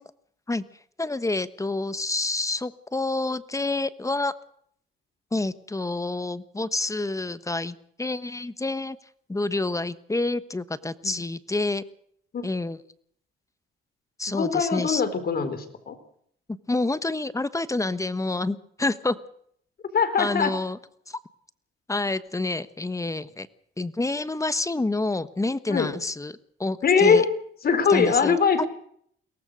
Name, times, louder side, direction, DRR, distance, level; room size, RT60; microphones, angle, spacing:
voice 1, 1.0-4.3 5.3-9.0 9.3-11.8 12.4-12.8 14.2-15.0 16.7-19.2 20.2-20.8 21.1-21.2 21.9-23.5 23.8-26.3 26.6-27.2 27.9-28.6, left 2 dB, 15° left, 15 dB, 1.2 m, -28 dB
voice 2, 14.3-16.0 19.9-20.5 25.7-25.9 26.8-27.3 27.6-28.7, left 6 dB, 50° left, 11 dB, 4.0 m, -22 dB
23.0 x 18.5 x 6.4 m, 0.66 s
cardioid pair, 90°, 20 cm